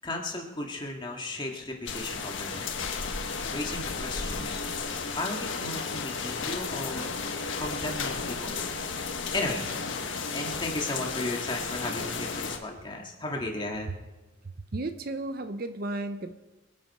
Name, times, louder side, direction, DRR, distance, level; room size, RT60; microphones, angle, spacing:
voice 1, 0.0-2.7 3.5-4.6 5.1-7.2 7.6-8.6 9.3-9.7 10.3-13.9, left 2 dB, 25° left, 0 dB, 2.1 m, -35 dB
sound 1, 1.9-12.6, left 4 dB, 70° left, 1.5 m, -34 dB
sound 2, 2.8-11.2, left 5 dB, 90° left, 1.3 m, -42 dB
voice 2, 14.4-16.3, right 2 dB, 50° right, 9 dB, 0.7 m, -34 dB
26.0 x 8.7 x 4.9 m, 1.2 s
head